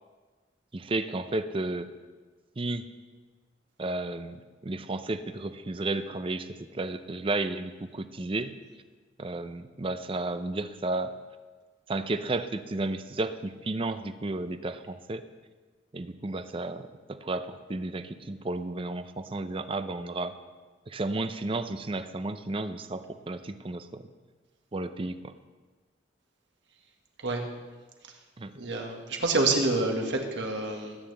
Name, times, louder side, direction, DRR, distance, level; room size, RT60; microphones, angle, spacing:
voice 1, 0.7-1.9 2.6-2.8 3.8-8.5 9.2-11.1 11.9-15.2 15.9-20.3 20.9-24.1 24.7-25.3 28.4-28.5, right 2 dB, 30° right, 11 dB, 0.5 m, -33 dB
voice 2, 28.5-31.0, right 2 dB, 75° right, 2 dB, 1.7 m, -27 dB
20.5 x 9.0 x 3.4 m, 1.3 s
head